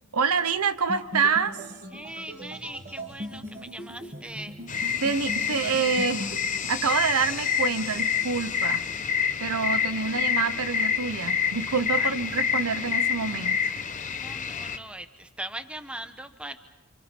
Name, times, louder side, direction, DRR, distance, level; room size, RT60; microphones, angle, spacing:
voice 1, 0.1-1.6 5.0-6.4 6.7-8.8 9.4-13.7, right 5 dB, 90° right, 12 dB, 1.0 m, -27 dB
sound 1, 0.9-6.5, equal, 35° right, 3.5 m, -39 dB
voice 2, 1.9-4.6 12.0-12.2 14.1-16.6, right 1 dB, 5° right, 9 dB, 1.1 m, -40 dB
sound 2, 4.7-14.8, left 7 dB, 35° left, 1.0 m, -28 dB
28.5 x 26.5 x 5.4 m, 1.1 s
head